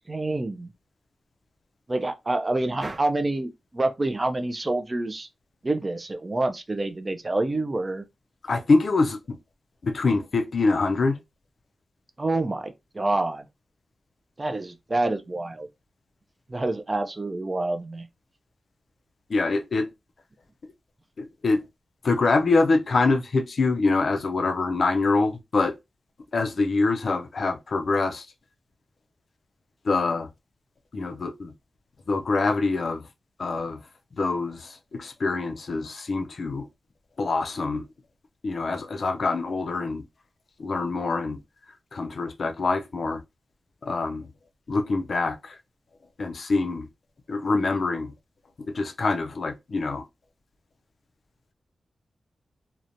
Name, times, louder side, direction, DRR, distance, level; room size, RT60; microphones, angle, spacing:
voice 1, 0.1-0.7 1.9-5.3 5.6-8.0 12.2-13.5 14.4-15.7 16.5-18.1, right 2 dB, 25° right, 0.3 m, -27 dB
voice 2, 8.4-9.4 9.8-11.2 19.3-19.9 21.2-21.6 22.0-25.8 26.3-28.3 29.8-30.3 30.9-31.5 32.1-33.1 33.4-33.8 34.1-36.7 37.2-37.9 38.4-40.0 40.6-41.4 41.9-43.2 43.8-44.3 44.7-45.6 46.2-46.9 47.3-48.1 48.6-50.1, left 3 dB, 55° left, 0.4 m, -25 dB
2.8 x 2.1 x 2.5 m
wide cardioid pair, 135°, 0 cm